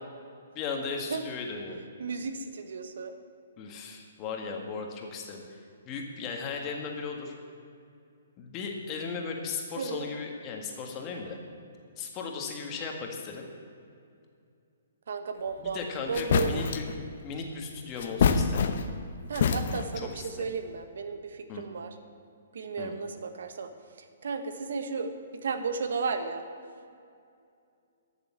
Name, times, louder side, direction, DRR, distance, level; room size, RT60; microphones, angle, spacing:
voice 1, 0.5-1.8 3.6-7.3 8.4-11.4 12.0-13.5 15.6-18.7 19.9-20.5 21.5-21.6 22.8-22.9, left 4 dB, 25° left, 1 dB, 1.7 m, -37 dB
voice 2, 2.0-3.1 9.8-10.1 15.1-15.8 16.1-16.6 19.3-21.9 22.5-23.7 24.2-25.1 25.4-26.4, right 5 dB, 70° right, 8 dB, 1.0 m, -34 dB
sound 1, 15.7-15.8 16.1-17.0 18.0-19.0 19.3-20.0, left 6 dB, 60° left, 0.8 m, -26 dB
12.5 x 6.9 x 7.3 m, 2.4 s
hypercardioid pair, 150°, 0 cm